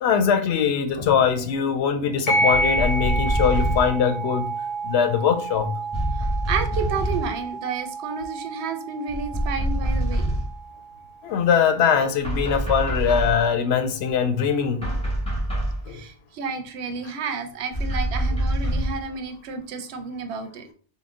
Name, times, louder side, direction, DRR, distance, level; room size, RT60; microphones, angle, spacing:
voice 1, 0.0-4.5 4.8-5.7 11.2-14.9 15.9-16.0, left 7 dB, 85° left, 0.8 m, -22 dB
sound 1, 2.3-11.3, right 2 dB, 50° left, 2.2 m, -29 dB
sound 2, 2.5-4.0 5.9-7.4 9.1-10.6 12.2-13.5 14.8-15.8 17.7-19.0, right 1 dB, 5° left, 1.2 m, -25 dB
voice 2, 6.2-10.4 15.9-20.7, right 5 dB, 85° right, 0.8 m, -31 dB
3.8 x 2.1 x 3.6 m
omnidirectional pair, 1.1 m